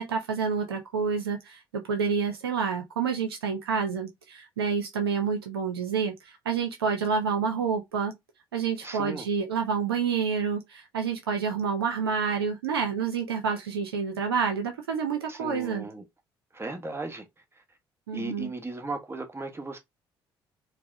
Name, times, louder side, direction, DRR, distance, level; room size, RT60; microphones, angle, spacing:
voice 1, 0.0-8.1 8.5-15.9 18.1-18.5, right 6 dB, 85° right, 0.5 m, -28 dB
voice 2, 8.8-9.3 15.3-16.0 16.5-17.2 18.1-19.8, right 2 dB, 20° right, 1.1 m, -36 dB
4.5 x 2.0 x 2.6 m
hypercardioid pair, 50°, 12 cm